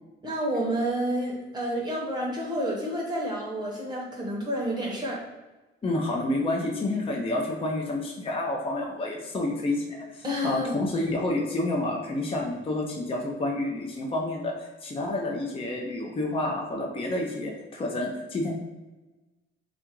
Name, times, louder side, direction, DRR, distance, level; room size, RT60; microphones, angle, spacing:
voice 1, 0.2-5.2 10.2-10.7, equal, 20° right, -4 dB, 0.8 m, -29 dB
voice 2, 5.8-14.5 14.8-18.5, left 2 dB, 25° left, -1 dB, 0.6 m, -29 dB
3.7 x 2.5 x 4.4 m, 1.2 s
cardioid pair, 145°, 21 cm